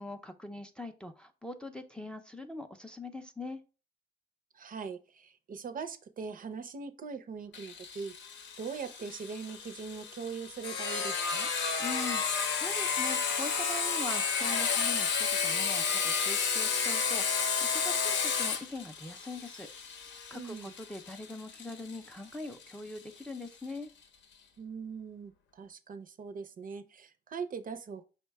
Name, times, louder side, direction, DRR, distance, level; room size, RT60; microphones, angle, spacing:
voice 1, 0.0-3.6 11.8-23.9, left 2 dB, 5° left, 0.4 m, -42 dB
voice 2, 4.5-8.1 8.6-11.5 20.3-20.7 24.6-28.0, right 5 dB, 45° right, 0.5 m, -41 dB
Sawing, 7.5-23.0, left 6 dB, 65° left, 0.7 m, -32 dB
5.2 x 2.2 x 4.5 m
cardioid pair, 90°, 20 cm